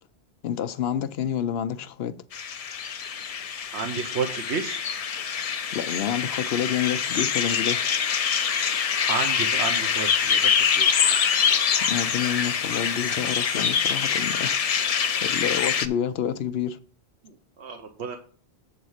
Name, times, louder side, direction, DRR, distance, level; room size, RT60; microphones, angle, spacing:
voice 1, 0.4-2.2 5.7-7.9 11.9-14.9 15.2-16.8, left 9 dB, 70° left, 0.8 m, -28 dB
sound 1, 2.3-15.9, left 7 dB, 50° left, 0.4 m, -25 dB
voice 2, 3.7-4.8 9.0-11.2 17.2-18.2, right 5 dB, 80° right, 1.1 m, -32 dB
8.0 x 4.1 x 6.3 m
omnidirectional pair, 1.1 m